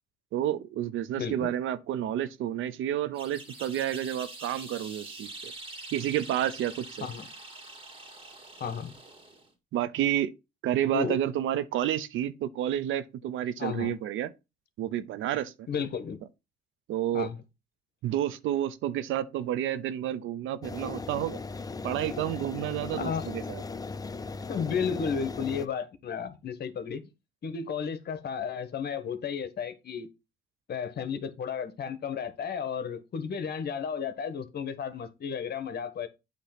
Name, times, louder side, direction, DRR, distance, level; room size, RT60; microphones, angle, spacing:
voice 1, 0.3-5.5 5.9-7.1 9.7-10.3 10.6-14.3 14.8-15.7 16.9-17.3 18.0-21.4 21.8-23.6, right 11 dB, 85° right, 0.7 m, -30 dB
voice 2, 1.1-1.5 7.0-7.3 8.6-8.9 10.9-11.2 13.6-14.0 15.7-16.2 17.1-17.4 23.0-23.3 24.4-27.0 27.4-30.1 30.7-36.1, left 6 dB, 55° left, 1.2 m, -33 dB
sound 1, 3.1-9.5, right 2 dB, 25° right, 1.8 m, -45 dB
sound 2, 20.6-25.7, left 4 dB, 20° left, 0.5 m, -38 dB
8.4 x 3.0 x 5.7 m
cardioid pair, 90°, 20 cm